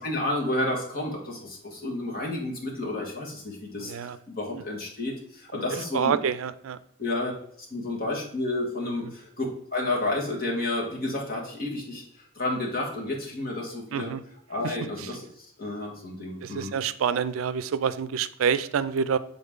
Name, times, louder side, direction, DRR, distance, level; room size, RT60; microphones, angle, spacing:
voice 1, 0.0-6.2 7.0-7.3 7.7-9.5 9.7-12.0 12.3-14.1 14.5-15.3 15.6-16.8, left 2 dB, 50° left, -2 dB, 1.5 m, -31 dB
voice 2, 5.9-6.8 13.9-14.2 16.4-19.2, right 7 dB, 90° right, 15 dB, 0.4 m, -27 dB
6.7 x 3.9 x 3.6 m, 0.67 s
head